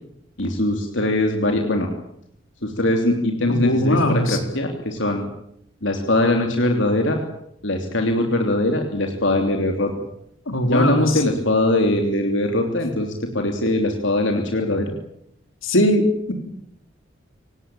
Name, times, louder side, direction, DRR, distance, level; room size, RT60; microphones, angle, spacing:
voice 1, 0.4-1.9 2.6-5.3 5.8-7.2 7.6-9.9 10.6-14.9, left 1 dB, 70° left, 3 dB, 3.1 m, -21 dB
voice 2, 3.5-4.4 10.5-11.2 15.6-16.3, equal, 90° left, 6 dB, 4.6 m, -20 dB
27.5 x 18.5 x 9.1 m, 0.75 s
head